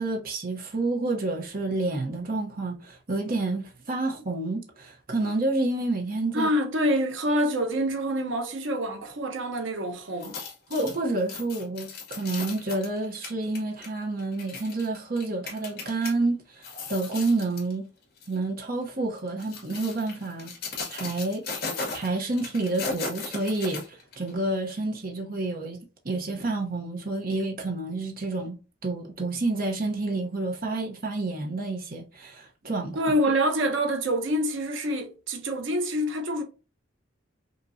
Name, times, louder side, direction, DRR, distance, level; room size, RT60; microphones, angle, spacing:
voice 1, 0.0-6.5 10.7-16.6 16.9-17.9 18.3-20.5 20.9-21.4 21.9-25.8 26.0-28.6 28.8-33.0, right 2 dB, 50° right, 0.9 m, -29 dB
voice 2, 6.3-10.4 32.9-36.4, equal, 80° right, 1.0 m, -26 dB
sound 1, 10.1-16.1 16.5-17.7 18.2-18.4 19.2-24.3 24.7-24.8, left 4 dB, 55° left, 1.9 m, -37 dB
5.5 x 3.0 x 2.7 m
head